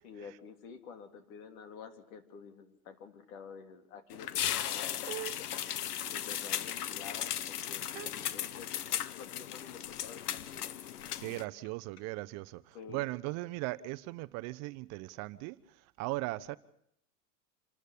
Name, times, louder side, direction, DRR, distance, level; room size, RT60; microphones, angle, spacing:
voice 1, 0.0-5.5 6.1-10.7 12.7-13.1, left 6 dB, 65° left, 3.3 m, -50 dB
sound 1, 4.1-11.4, left 11 dB, 85° left, 1.2 m, -36 dB
voice 2, 11.2-16.6, right 20 dB, 35° right, 0.8 m, -38 dB
27.5 x 13.0 x 8.5 m
supercardioid pair, 135°, 45 cm